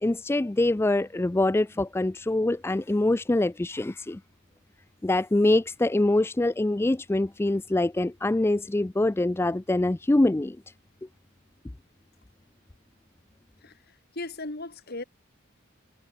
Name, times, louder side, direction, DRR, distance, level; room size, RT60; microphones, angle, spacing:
voice 1, 0.0-4.2 5.0-10.6, left 2 dB, 10° left, 0.3 m, -24 dB
voice 2, 13.6-15.0, left 2 dB, 50° left, 2.5 m, -38 dB
head